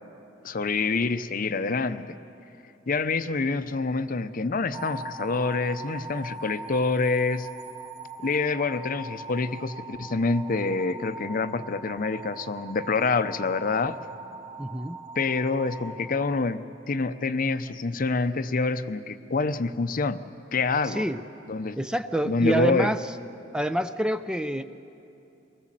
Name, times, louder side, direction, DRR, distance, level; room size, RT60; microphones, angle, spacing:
voice 1, 0.4-2.2 2.9-7.5 8.2-14.0 15.2-20.2 20.5-21.0 21.5-21.8 22.2-22.9, left 3 dB, 50° left, 12 dB, 0.7 m, -26 dB
sound 1, 4.7-16.9, right 2 dB, 35° right, 2.3 m, -41 dB
voice 2, 14.6-15.0 20.8-21.2 21.8-23.0 23.5-24.6, right 1 dB, 5° right, 10 dB, 0.5 m, -27 dB
23.5 x 19.5 x 7.6 m, 2.8 s
head